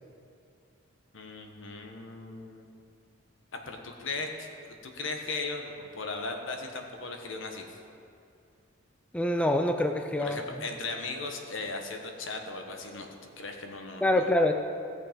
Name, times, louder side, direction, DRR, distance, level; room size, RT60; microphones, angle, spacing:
voice 1, 1.1-2.7 3.7-7.8 10.2-14.3, left 3 dB, 70° left, 3 dB, 1.2 m, -37 dB
voice 2, 9.1-10.4 14.0-14.5, left 1 dB, 5° left, 5 dB, 0.4 m, -25 dB
16.5 x 6.8 x 5.1 m, 2.5 s
head